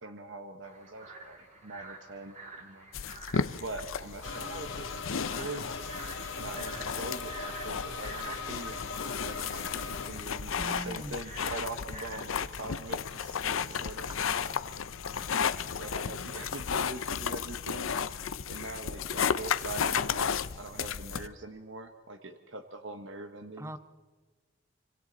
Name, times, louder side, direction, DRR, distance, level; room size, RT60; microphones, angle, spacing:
voice 1, 0.0-2.3 2.6-2.9 3.6-5.8 6.3-8.8 9.2-14.6 15.8-17.9 18.5-23.8, right 2 dB, 70° right, 6 dB, 1.2 m, -43 dB
sound 1, 0.6-12.4, right 3 dB, 35° right, 2.9 m, -49 dB
sound 2, 2.9-21.3, left 6 dB, 90° left, 0.6 m, -34 dB
sound 3, 4.2-10.1, left 4 dB, 70° left, 1.9 m, -39 dB
voice 2, 10.6-11.2 14.1-14.5 15.2-15.6 23.6-23.8, right 1 dB, 15° right, 12 dB, 0.7 m, -43 dB
25.5 x 25.5 x 4.0 m, 1.3 s
head